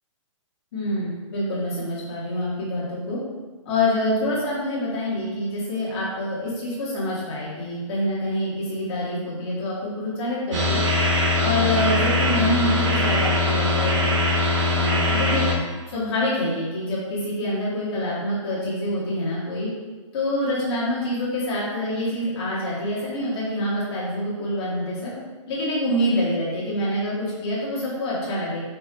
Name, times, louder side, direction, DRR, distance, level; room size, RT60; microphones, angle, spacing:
voice 1, 0.7-3.2 3.6-10.8 11.4-14.2 14.7-15.4 15.9-19.7 20.1-25.1 25.5-28.6, left 1 dB, 50° left, -8 dB, 1.4 m, -26 dB
sound 1, 10.5-15.5, left 2 dB, 70° right, 1.0 m, -21 dB
4.3 x 2.6 x 2.2 m, 1.3 s
hypercardioid pair, 155°, 17 cm